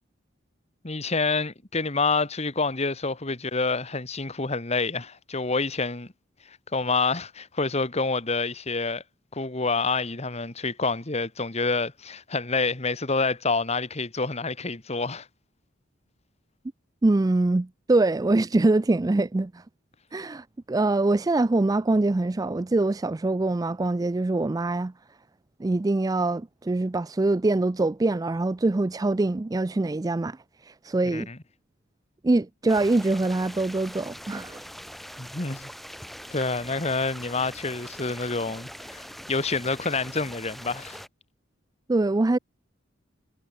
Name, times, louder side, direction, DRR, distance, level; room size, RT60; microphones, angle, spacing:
voice 1, 0.8-6.1 6.5-9.0 9.3-15.3 31.1-31.4 35.2-35.7 36.3-41.0, left 3 dB, 35° left, 1.7 m, -28 dB
voice 2, 17.0-19.5 20.1-24.9 25.6-30.4 30.8-31.3 32.2-34.6 41.9-42.4, right 2 dB, 20° right, 0.4 m, -24 dB
sound 1, 32.7-41.1, equal, ahead, 1.8 m, -42 dB
head